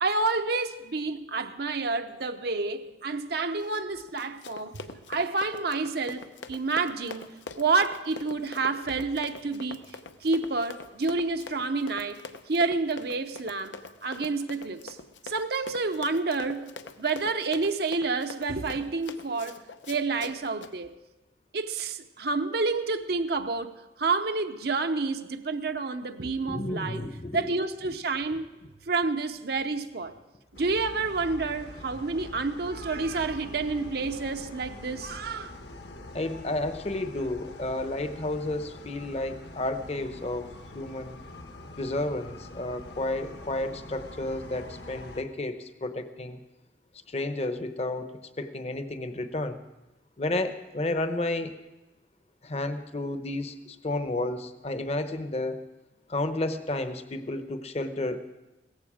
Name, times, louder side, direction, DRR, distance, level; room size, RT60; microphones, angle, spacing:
voice 1, 0.0-9.8 10.2-12.2 12.5-15.0 15.2-19.6 19.9-20.9 21.5-23.7 24.0-27.0 27.3-28.5 28.9-30.1 30.5-35.5, right 3 dB, 60° right, 0.7 m, -29 dB
Run, 3.5-20.7, left 4 dB, 80° left, 0.8 m, -44 dB
voice 2, 26.5-27.5 36.1-40.5 40.7-41.1 41.8-46.4 47.1-49.6 50.2-51.6 52.4-55.6 56.1-58.2, left 2 dB, 35° left, 0.9 m, -31 dB
sound 1, 30.5-45.2, left 2 dB, 60° left, 1.3 m, -44 dB
17.0 x 14.5 x 5.0 m
head